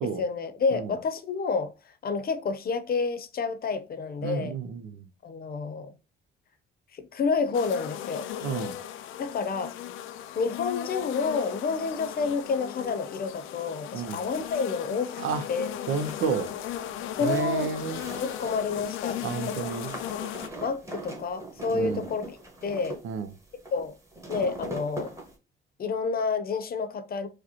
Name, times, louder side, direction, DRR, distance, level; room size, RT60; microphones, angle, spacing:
voice 1, 0.0-4.6 5.2-5.9 6.9-8.3 9.2-9.7 10.3-15.2 15.5-15.7 17.2-17.7 18.2-19.7 20.6-22.2 22.6-23.0 23.7-23.9 24.3-25.1 25.8-27.3, left 4 dB, 50° left, 0.7 m, -29 dB
voice 2, 4.2-5.1 8.4-8.7 13.9-14.2 15.2-15.4 15.9-16.5 17.2-18.0 19.2-19.9 21.7-22.0 23.0-23.3, right 6 dB, 85° right, 0.6 m, -30 dB
sound 1, 7.5-20.5, left 11 dB, 85° left, 0.4 m, -37 dB
sound 2, 16.0-25.3, right 1 dB, 15° right, 1.4 m, -41 dB
4.8 x 2.1 x 2.9 m
cardioid pair, 90°, 20 cm